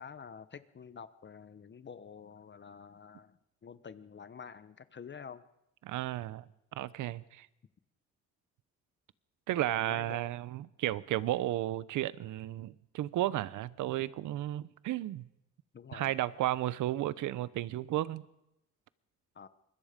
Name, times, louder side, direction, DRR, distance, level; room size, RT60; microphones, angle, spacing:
voice 1, 0.0-5.4 9.7-10.4 15.7-16.2 19.3-19.5, left 6 dB, 35° left, 1.1 m, -48 dB
voice 2, 5.8-6.5 6.8-7.5 9.5-15.3 15.9-18.2, right 14 dB, 80° right, 0.9 m, -33 dB
26.0 x 21.5 x 5.2 m
cardioid pair, 90°, 30 cm